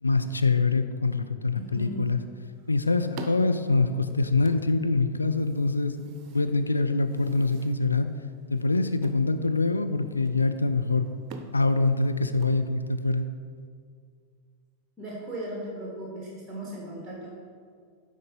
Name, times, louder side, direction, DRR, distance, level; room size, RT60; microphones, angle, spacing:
voice 1, 0.0-2.2 2.7-8.1 8.5-11.1 11.5-13.3, left 3 dB, 80° left, 9 dB, 0.4 m, -25 dB
voice 2, 1.5-2.1 15.0-17.3, right 1 dB, 5° right, -3 dB, 1.6 m, -37 dB
sound 1, 2.1-13.2, right 4 dB, 40° right, 0.6 m, -49 dB
9.6 x 3.8 x 5.4 m, 2.2 s
figure-of-eight pair, 90°, 0 cm